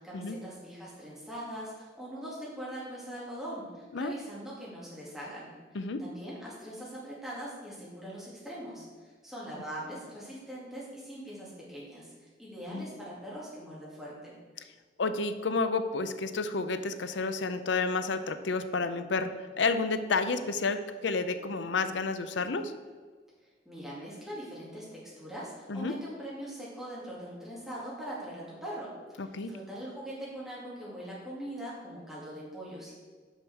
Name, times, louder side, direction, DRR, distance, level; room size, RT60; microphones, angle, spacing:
voice 1, 0.0-5.5 6.0-14.4 23.6-32.9, right 1 dB, ahead, -8 dB, 2.7 m, -42 dB
voice 2, 15.0-22.7 25.7-25.9 29.2-29.5, left 4 dB, 80° left, 10 dB, 0.6 m, -30 dB
6.5 x 5.9 x 6.3 m, 1.5 s
head